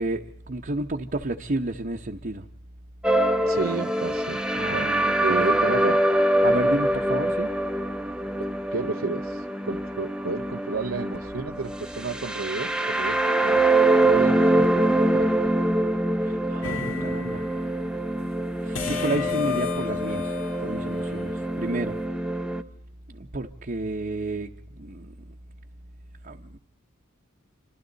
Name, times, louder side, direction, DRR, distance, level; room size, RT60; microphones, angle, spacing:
voice 1, 0.0-2.4 4.5-5.7 6.4-7.5 16.2-17.5 18.6-22.0 23.1-24.5 24.8-25.3 26.2-26.6, right 2 dB, 45° right, 0.9 m, -31 dB
sound 1, 3.0-22.6, right 1 dB, 5° right, 0.8 m, -24 dB
voice 2, 3.4-4.4 4.7-4.9 5.2-6.0 8.7-13.7 14.0-14.9 15.1-15.3, right 4 dB, 85° right, 0.8 m, -31 dB
sound 2, 16.6-17.5 18.7-21.6, left 8 dB, 85° left, 2.0 m, -32 dB
27.5 x 25.5 x 4.0 m
head